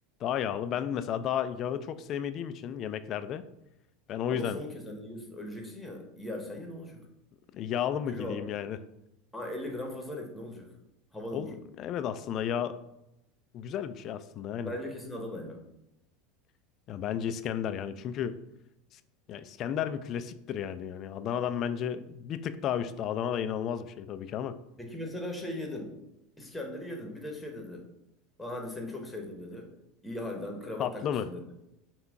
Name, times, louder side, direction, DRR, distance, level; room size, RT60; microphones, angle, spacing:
voice 1, 0.2-3.4 4.1-4.6 7.5-8.8 11.3-12.8 13.5-14.7 16.9-18.4 18.9-19.0 19.3-24.6 30.8-31.3, left 9 dB, 45° left, 12 dB, 0.3 m, -33 dB
voice 2, 4.3-7.0 8.1-8.4 9.3-10.7 11.1-11.5 14.6-15.6 24.8-26.0 26.4-27.8 28.4-29.7 30.0-31.4, left 1 dB, 5° left, 1 dB, 1.0 m, -39 dB
5.6 x 2.3 x 3.6 m, 0.88 s
supercardioid pair, 115°, 0 cm